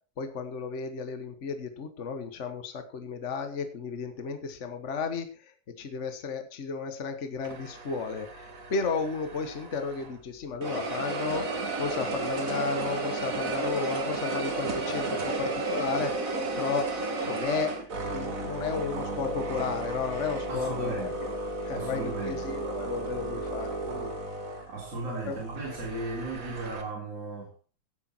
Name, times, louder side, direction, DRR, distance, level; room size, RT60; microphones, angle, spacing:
voice 1, 0.2-11.5 11.8-24.2 24.6-24.7 25.3-25.4, left 5 dB, 50° left, 0.8 m, -34 dB
sound 1, 7.4-10.2 10.6-26.8, right 3 dB, 30° right, 1.9 m, -33 dB
voice 2, 20.5-21.1 21.7-22.5 24.7-27.5, right 2 dB, 55° right, 4.9 m, -36 dB
16.5 x 8.4 x 4.4 m
omnidirectional pair, 3.3 m